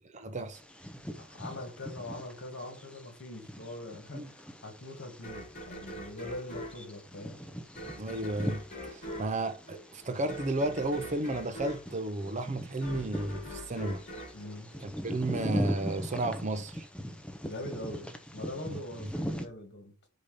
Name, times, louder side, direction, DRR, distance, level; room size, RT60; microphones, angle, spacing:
voice 1, 0.1-0.6 4.1-4.3 8.0-8.6 8.9-14.0 14.8-16.9 18.7-18.8, right 2 dB, 35° right, 0.6 m, -33 dB
Bird vocalization bird call bird song, 0.5-19.5, equal, 5° left, 0.8 m, -41 dB
voice 2, 1.2-7.4 9.2-9.3 14.3-14.7 17.4-19.9, left 1 dB, 55° left, 2.1 m, -42 dB
sound 1, 5.2-15.4, equal, 35° left, 2.9 m, -43 dB
5.0 x 4.2 x 4.9 m
head